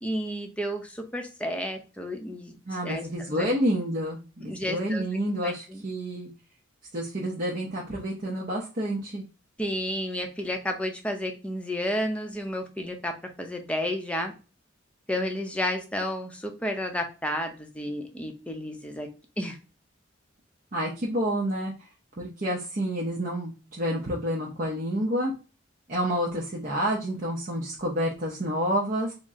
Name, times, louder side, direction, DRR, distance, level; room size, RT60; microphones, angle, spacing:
voice 1, 0.0-2.6 2.8-3.5 4.4-5.1 5.4-5.8 9.6-13.1 13.4-14.3 15.1-19.1 19.4-19.6, left 1 dB, 5° left, 4 dB, 0.6 m, -31 dB
voice 2, 2.7-6.3 6.9-9.2 20.7-21.7 22.2-25.3 25.9-29.1, equal, 40° right, -3 dB, 0.7 m, -29 dB
4.1 x 2.1 x 3.5 m, 0.33 s
head